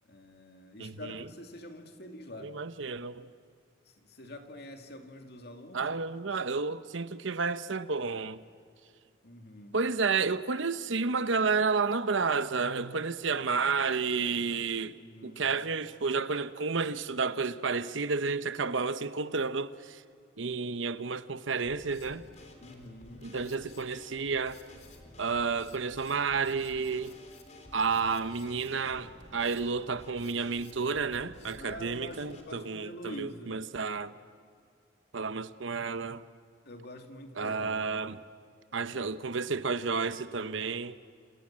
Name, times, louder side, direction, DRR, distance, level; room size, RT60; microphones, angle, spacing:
voice 1, 0.1-2.6 3.9-5.9 6.3-6.4 9.2-9.8 14.9-15.5 22.6-23.3 31.6-33.6 36.6-37.9, left 1 dB, 55° left, 2.5 m, -46 dB
voice 2, 0.8-1.3 2.4-3.3 5.7-8.4 9.7-15.0 15.2-20.0 20.4-22.2 23.2-24.6 25.2-27.1 27.7-34.1 35.1-36.2 37.4-38.2 38.7-41.0, right 4 dB, 70° right, 0.9 m, -31 dB
Drum kit, 21.6-32.4, left 2 dB, 35° left, 3.3 m, -52 dB
29.0 x 27.5 x 7.5 m
head